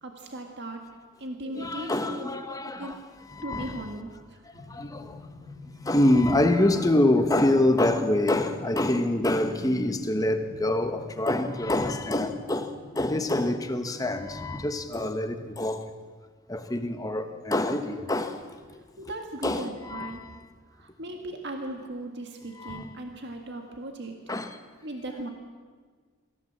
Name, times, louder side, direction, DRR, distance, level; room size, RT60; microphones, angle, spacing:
voice 1, 0.0-0.8 1.2-2.9 3.4-4.4 19.0-20.2 20.8-24.2 24.8-25.3, right 1 dB, 50° right, 1.7 m, -38 dB
voice 2, 1.5-3.0 3.3-3.8 4.7-5.2 5.8-12.7 13.0-15.8 16.5-18.4 19.4-20.4 22.6-22.9 24.3-24.6, left 1 dB, 15° left, 1.1 m, -25 dB
sound 1, 4.5-14.8, left 3 dB, 85° right, 5.8 m, -48 dB
24.0 x 15.0 x 7.4 m
head